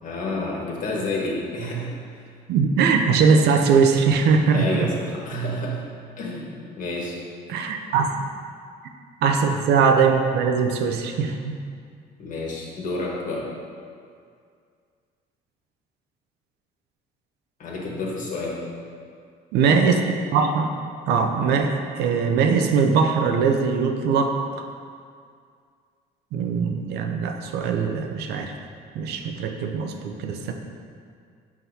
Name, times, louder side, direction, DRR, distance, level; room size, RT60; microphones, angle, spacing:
voice 1, 0.0-2.2 4.4-5.8 6.2-7.2 12.2-13.5 17.6-18.6, left 1 dB, 50° left, -3 dB, 1.4 m, -29 dB
voice 2, 2.5-4.9 7.5-8.3 9.2-11.6 19.5-20.0 20.3-20.7 21.1-24.6 26.3-28.5 28.9-30.5, right 5 dB, 80° right, 5 dB, 0.6 m, -21 dB
6.0 x 5.8 x 2.7 m, 2.2 s
cardioid pair, 110°, 17 cm